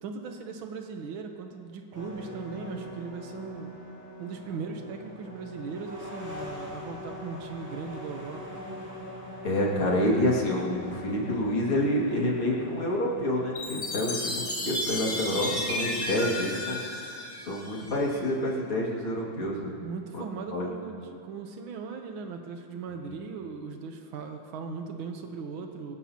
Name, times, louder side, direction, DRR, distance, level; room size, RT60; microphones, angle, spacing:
voice 1, 0.0-3.7 4.2-8.6 19.8-26.0, right 5 dB, 80° right, 4 dB, 1.8 m, -38 dB
sound 1, 1.9-15.8, left 1 dB, 10° right, 2.5 m, -43 dB
voice 2, 9.4-19.7 20.1-20.2 20.5-20.6 23.1-23.2, left 1 dB, 90° left, -4 dB, 3.3 m, -28 dB
Chime, 13.6-18.1, left 1 dB, 20° left, 1.9 m, -33 dB
24.5 x 13.5 x 2.9 m, 2.6 s
omnidirectional pair, 2.2 m